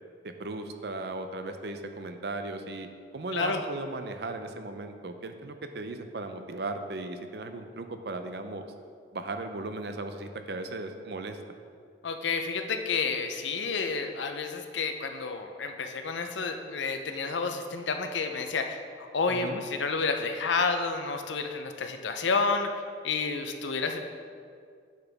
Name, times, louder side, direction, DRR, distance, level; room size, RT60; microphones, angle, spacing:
voice 1, 0.2-2.9 3.1-8.6 9.1-11.4 19.3-19.6, right 2 dB, 60° right, 7 dB, 0.6 m, -37 dB
voice 2, 3.3-3.6 12.0-24.0, left 4 dB, 90° left, 6 dB, 0.6 m, -30 dB
10.5 x 5.9 x 3.5 m, 2.2 s
head